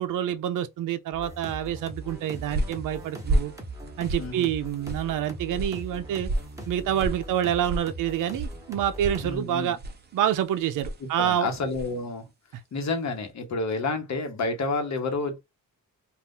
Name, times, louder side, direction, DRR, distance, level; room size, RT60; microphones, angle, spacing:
voice 1, 0.0-3.5 4.0-6.3 6.7-9.8 10.1-11.5, right 10 dB, 65° right, 0.5 m, -27 dB
sound 1, 1.1-9.4, right 1 dB, 10° right, 1.1 m, -40 dB
sound 2, 2.0-12.1, right 1 dB, 30° right, 0.8 m, -34 dB
voice 2, 4.2-4.5 9.2-9.8 11.0-12.2 12.7-15.4, left 3 dB, 50° left, 1.1 m, -29 dB
2.6 x 2.4 x 3.5 m
cardioid pair, 100°, 35 cm